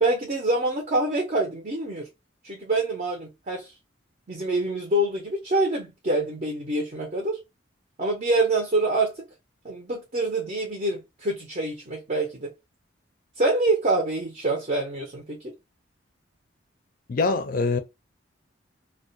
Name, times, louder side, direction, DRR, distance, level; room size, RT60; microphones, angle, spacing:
voice 1, 0.0-2.1 2.4-3.7 4.3-7.4 8.0-9.1 9.6-12.5 13.4-15.5, right 2 dB, 40° right, 0.5 m, -26 dB
voice 2, 17.1-17.8, left 4 dB, 45° left, 0.4 m, -23 dB
2.3 x 2.1 x 2.6 m
head